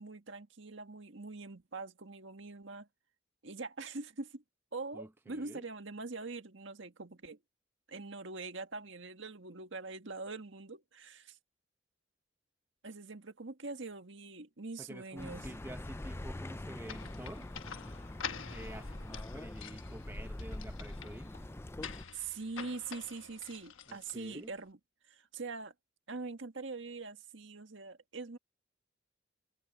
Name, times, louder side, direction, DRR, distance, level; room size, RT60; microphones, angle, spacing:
voice 1, 0.0-2.9 3.4-4.4 4.7-7.4 7.9-11.4 12.8-15.5 22.1-24.8 25.1-25.7 26.1-28.4, right 3 dB, 70° right, 1.7 m, -43 dB
voice 2, 4.9-5.6 14.8-17.5 18.5-21.3 23.9-24.5, right 1 dB, 10° right, 0.8 m, -49 dB
Accelerating revving vroom, 15.2-22.1, left 1 dB, 15° left, 0.4 m, -44 dB
sound 1, 16.9-24.5, left 7 dB, 85° left, 1.2 m, -47 dB
head